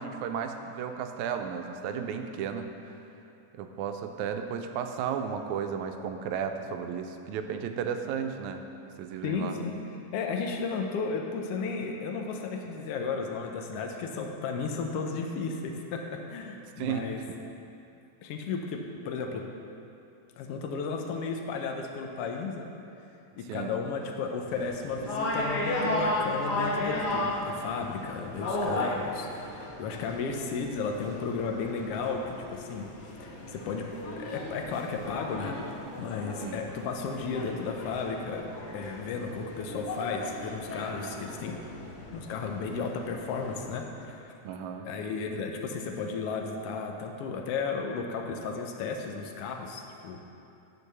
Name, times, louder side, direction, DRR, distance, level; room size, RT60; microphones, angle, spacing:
voice 1, 0.0-2.7 3.5-8.6 9.0-9.6 16.8-17.4 23.5-23.7 36.4-36.6 44.4-44.9, right 7 dB, 90° right, 6 dB, 2.0 m, -34 dB
voice 2, 9.2-9.7 10.1-17.2 18.2-19.5 20.4-22.7 23.4-32.9 33.2-35.6 36.0-38.5 38.7-41.6 42.1-44.3 44.9-50.2, left 4 dB, 75° left, 3 dB, 1.4 m, -34 dB
sound 1, 24.4-43.8, left 1 dB, 60° left, 1.0 m, -35 dB
9.8 x 4.6 x 6.7 m, 2.8 s
omnidirectional pair, 3.3 m